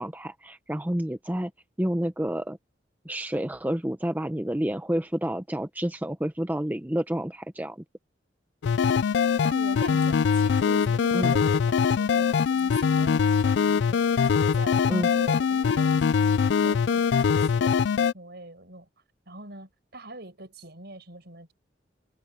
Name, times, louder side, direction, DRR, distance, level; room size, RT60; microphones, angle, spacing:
voice 1, 0.0-1.5 1.8-2.6 3.0-7.8 11.1-11.3 14.9-15.1, right 1 dB, 10° right, 0.7 m, -29 dB
sound 1, 8.6-18.1, left 6 dB, 65° left, 0.3 m, -22 dB
voice 2, 9.4-14.2 14.5-18.9 19.3-21.5, right 2 dB, 60° right, 7.0 m, -43 dB
head